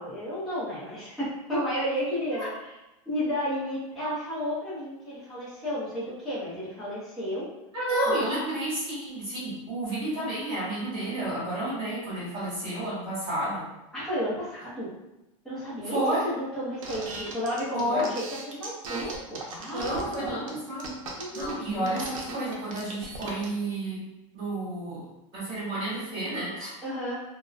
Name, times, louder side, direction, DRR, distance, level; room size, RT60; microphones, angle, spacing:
voice 1, 0.0-2.7 3.1-7.5 8.1-8.2 13.9-14.9 15.4-20.6 21.2-22.5 26.8-27.2, equal, ahead, -12 dB, 0.6 m, -32 dB
voice 2, 7.7-13.6 15.8-16.2 17.7-18.0 19.7-20.9 21.3-24.0 24.3-25.0 25.3-26.7, right 1 dB, 25° right, -11 dB, 1.4 m, -30 dB
sound 1, 16.8-23.5, right 3 dB, 75° right, 0.6 m, -38 dB
2.5 x 2.0 x 2.4 m, 0.93 s
supercardioid pair, 175°, 17 cm